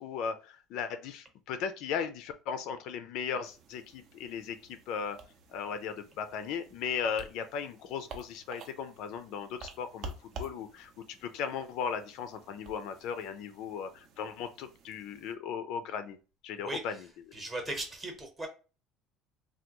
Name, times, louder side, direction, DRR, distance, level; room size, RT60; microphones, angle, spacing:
voice 1, 0.0-5.2 5.5-10.9 11.2-16.2 16.4-17.1, left 7 dB, 60° left, 0.3 m, -37 dB
sound 1, 3.4-15.3, right 3 dB, 45° right, 0.5 m, -50 dB
voice 2, 17.3-18.5, right 2 dB, 15° right, 0.8 m, -37 dB
3.3 x 2.2 x 2.9 m
cardioid pair, 160°, 0 cm